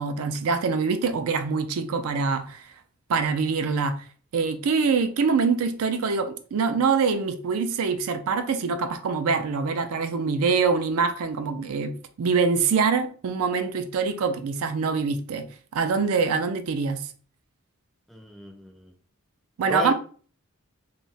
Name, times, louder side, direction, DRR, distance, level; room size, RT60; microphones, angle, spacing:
voice 1, 0.0-2.6 3.1-4.0 4.3-15.5 15.7-17.0 19.6-19.9, right 5 dB, 75° right, 0.4 m, -24 dB
voice 2, 18.1-18.9 19.7-19.9, equal, ahead, 0.3 m, -34 dB
2.3 x 2.0 x 3.9 m
head